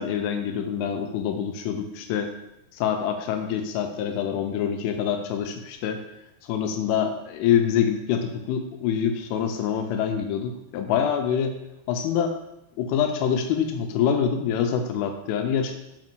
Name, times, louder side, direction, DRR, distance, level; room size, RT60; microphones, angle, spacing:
voice 1, 0.0-2.3 2.7-6.0 6.4-11.5 11.9-12.4 12.8-15.7, left 8 dB, 85° left, 5 dB, 3.1 m, -25 dB
5.8 x 5.2 x 4.5 m, 0.88 s
omnidirectional pair, 5.7 m